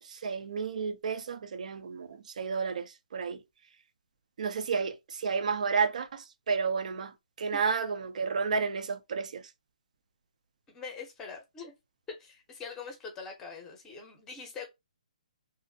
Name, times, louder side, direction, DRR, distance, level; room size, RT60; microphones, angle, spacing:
voice 1, 0.0-3.4 4.4-9.5, right 5 dB, 65° right, 0.5 m, -32 dB
voice 2, 10.7-11.7 12.1-14.7, left 5 dB, 10° left, 0.7 m, -43 dB
2.6 x 2.0 x 2.6 m
hypercardioid pair, 160°, 4 cm